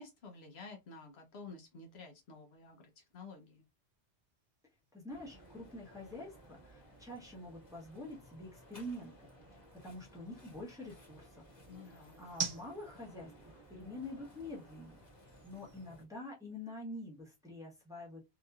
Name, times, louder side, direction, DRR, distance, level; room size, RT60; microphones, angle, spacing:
voice 1, 0.0-3.6 11.7-12.2, left 3 dB, 70° left, 1.0 m, -51 dB
sound 1, 2.6-16.8, right 5 dB, 60° right, 1.2 m, -50 dB
voice 2, 4.9-9.1 9.5-11.4 11.8-18.2, left 1 dB, 5° right, 0.9 m, -47 dB
sound 2, 5.1-16.1, right 1 dB, 15° left, 1.6 m, -58 dB
2.9 x 2.8 x 2.3 m
omnidirectional pair, 1.1 m